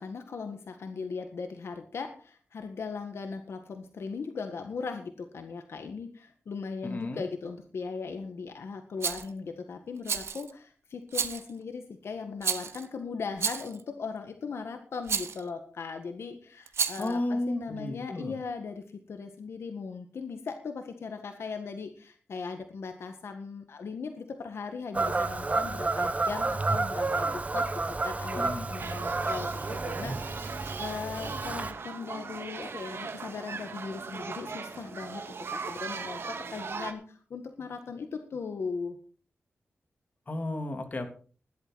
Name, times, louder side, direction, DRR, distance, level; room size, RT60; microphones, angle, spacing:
voice 1, 0.0-35.2 35.5-39.0, left 5 dB, 80° left, 6 dB, 1.7 m, -38 dB
voice 2, 6.8-7.2 17.0-18.4 28.3-28.7 40.3-41.1, left 1 dB, 40° left, 5 dB, 3.3 m, -33 dB
Rattle, 9.0-9.3 10.1-10.5 11.1-11.5 12.4-12.9 13.4-13.8 15.1-15.4 16.7-17.1, right 6 dB, 85° right, 1.3 m, -31 dB
Fowl / Bird vocalization bird call bird song, 24.9-31.7, right 3 dB, 35° right, 1.3 m, -30 dB
sound 1, 28.8-36.9, right 5 dB, 70° right, 2.1 m, -39 dB
16.0 x 12.0 x 4.2 m, 0.40 s
wide cardioid pair, 90°, 4 cm